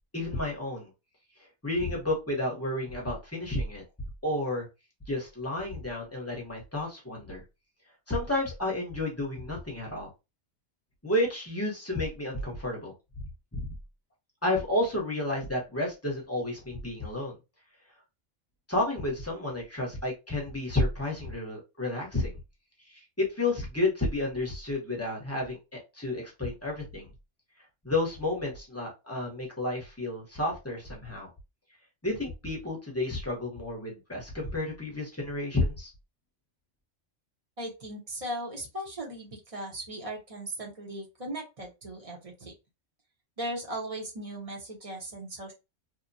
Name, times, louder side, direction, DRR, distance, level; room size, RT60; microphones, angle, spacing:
voice 1, 0.1-0.9 1.6-3.8 4.2-4.7 5.1-7.4 8.1-10.1 11.0-12.9 13.5-13.7 14.4-17.4 18.7-22.3 22.9-27.1 27.8-31.3 32.0-35.9, left 2 dB, 15° left, -2 dB, 0.8 m, -31 dB
voice 2, 37.6-42.5 43.4-45.5, right 1 dB, 35° right, -1 dB, 0.8 m, -38 dB
2.9 x 2.2 x 2.6 m, 0.25 s
omnidirectional pair, 1.2 m